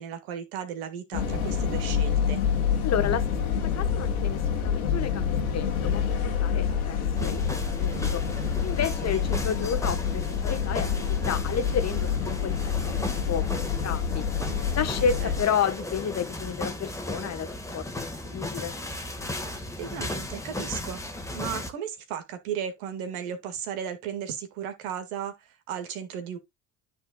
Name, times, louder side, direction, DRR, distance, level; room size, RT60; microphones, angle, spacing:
voice 1, 0.0-2.4 9.0-9.3 15.0-15.3 19.8-21.0 21.3-26.4, right 8 dB, 75° right, 1.7 m, -35 dB
sound 1, 1.1-15.4, left 7 dB, 85° left, 1.8 m, -27 dB
voice 2, 2.8-8.2 8.6-14.2 14.8-18.8, left 7 dB, 35° left, 1.1 m, -31 dB
sound 2, 7.2-21.7, left 1 dB, 5° left, 1.5 m, -36 dB
12.5 x 4.1 x 2.3 m
hypercardioid pair, 65°, 43 cm